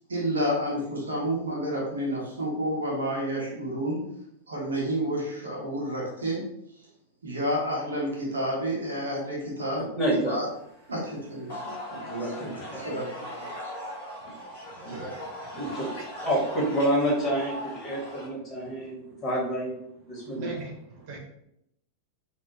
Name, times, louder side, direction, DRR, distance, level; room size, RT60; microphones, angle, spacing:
voice 1, 0.1-4.0 4.5-6.4 7.2-9.9 10.3-10.5 10.9-11.7 12.4-12.5 12.8-13.5, equal, 70° right, -3 dB, 1.1 m, -30 dB
voice 2, 9.9-10.4 12.0-12.8 14.8-15.0 15.5-19.7 20.0-20.5, right 1 dB, 30° left, -3 dB, 1.4 m, -28 dB
sound 1, 10.6-18.3, equal, 60° left, 1.2 m, -40 dB
voice 3, 14.7-15.6 20.3-21.2, right 1 dB, 45° right, -1 dB, 0.5 m, -41 dB
3.2 x 2.2 x 2.9 m, 0.76 s
figure-of-eight pair, 90°, 0 cm